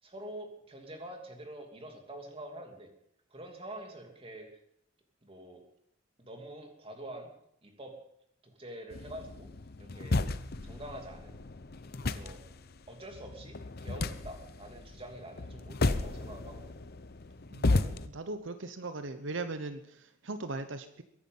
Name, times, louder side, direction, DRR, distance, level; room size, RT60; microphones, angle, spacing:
voice 1, 0.0-2.9 3.3-4.5 5.2-5.6 6.2-7.3 7.6-7.9 8.4-9.5 9.8-10.2 10.6-11.4 12.0-12.4 12.9-16.8, right 1 dB, 30° right, 3 dB, 2.9 m, -46 dB
sound 1, 8.9-18.1, left 2 dB, 55° left, 0.8 m, -34 dB
voice 2, 17.5-21.0, right 3 dB, 80° right, 9 dB, 1.0 m, -39 dB
22.5 x 11.0 x 5.6 m, 0.74 s
head